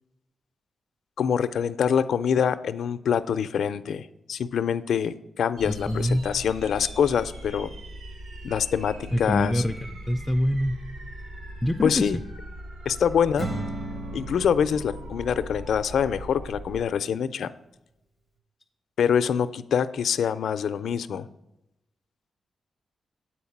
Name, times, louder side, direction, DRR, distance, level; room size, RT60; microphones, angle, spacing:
voice 1, 1.2-7.7 8.4-9.6 11.8-12.2 12.9-13.5 14.1-17.5 19.0-21.3, left 7 dB, 75° left, 12 dB, 0.4 m, -25 dB
sound 1, 5.6-16.9, right 1 dB, 60° right, 1.1 m, -40 dB
voice 2, 5.7-6.3 9.1-9.8 10.1-10.8 11.6-12.2, left 1 dB, 15° left, 7 dB, 0.3 m, -25 dB
Acoustic guitar / Strum, 13.4-16.7, right 2 dB, 25° right, 0.7 m, -37 dB
8.7 x 4.6 x 7.1 m, 0.91 s
wide cardioid pair, 160°, 0 cm